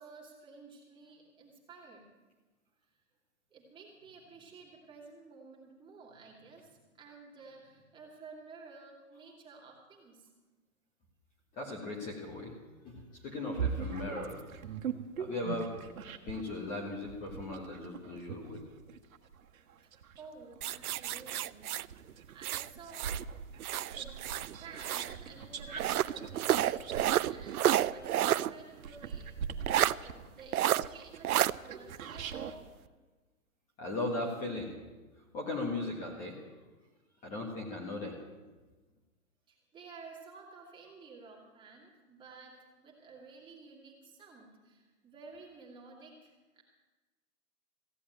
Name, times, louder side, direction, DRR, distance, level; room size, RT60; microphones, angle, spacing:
voice 1, 0.0-2.1 2.9-3.0 3.5-10.3 19.8-23.2 23.9-24.2 24.5-29.3 29.6-32.5 39.5-46.6, right 4 dB, 10° right, -2 dB, 2.3 m, -53 dB
voice 2, 11.5-12.5 12.8-14.5 15.2-15.7 16.2-18.6 33.8-34.7 35.3-36.5 37.2-38.2, left 2 dB, 15° left, -1 dB, 1.6 m, -37 dB
sound 1, 13.5-16.5 17.0-21.4 21.9-32.6, right 6 dB, 65° right, 1.6 m, -41 dB
sound 2, 20.6-23.2 23.6-25.1 25.8-28.5 28.8-28.9 29.7-29.9 30.5-30.8 31.2-31.5, right 12 dB, 80° right, 0.6 m, -30 dB
15.5 x 8.4 x 9.1 m, 1.2 s
hypercardioid pair, 155°, 44 cm